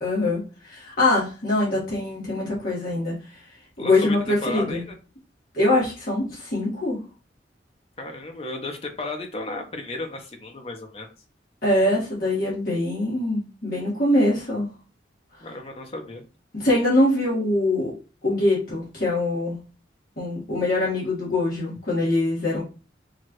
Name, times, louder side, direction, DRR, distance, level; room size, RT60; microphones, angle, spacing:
voice 1, 0.0-3.4 3.8-4.8 5.5-7.0 11.6-14.7 16.5-17.9 18.2-19.6 20.2-22.6, left 1 dB, 50° left, -7 dB, 1.7 m, -23 dB
voice 2, 3.8-5.0 8.0-11.1 15.4-16.2, left 2 dB, 35° left, 3 dB, 0.8 m, -34 dB
4.7 x 2.5 x 3.0 m, 0.33 s
head